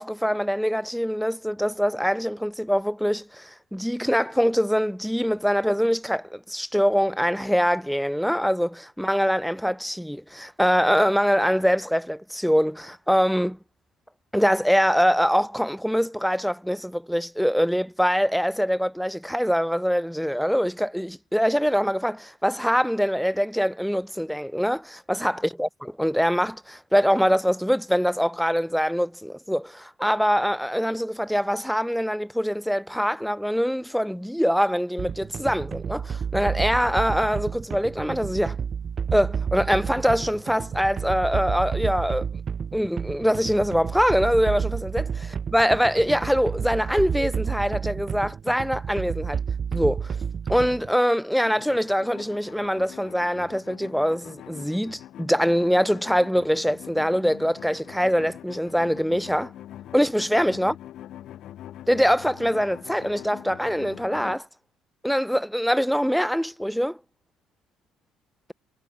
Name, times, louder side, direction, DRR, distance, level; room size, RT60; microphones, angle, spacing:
voice 1, 0.0-13.6 14.3-25.7 26.0-38.6 39.1-42.3 42.7-45.1 45.5-49.4 49.7-50.2 50.5-59.5 59.9-60.7 61.9-64.5 65.0-67.0, equal, ahead, 0.8 m, -23 dB
sound 1, 35.0-50.9, right 7 dB, 35° right, 2.0 m, -30 dB
sound 2, 51.4-64.4, left 12 dB, 60° left, 2.8 m, -43 dB
cardioid pair, 110°, 0 cm